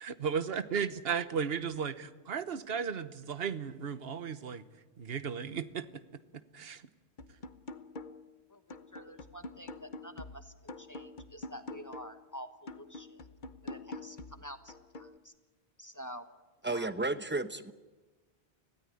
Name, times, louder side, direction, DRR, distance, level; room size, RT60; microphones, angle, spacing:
voice 1, 0.0-4.6 5.0-5.9 6.5-6.8, right 7 dB, 65° right, 12 dB, 1.3 m, -35 dB
sound 1, 7.2-8.4 8.7-12.2 12.7-15.2, left 2 dB, 45° left, 1.1 m, -46 dB
voice 2, 8.5-13.2 13.6-15.3 15.8-16.3 16.6-16.9, equal, 15° left, 8 dB, 1.2 m, -48 dB
voice 3, 16.6-17.7, right 2 dB, 10° right, 11 dB, 0.8 m, -33 dB
25.0 x 17.0 x 9.8 m, 1.3 s
omnidirectional pair, 1.1 m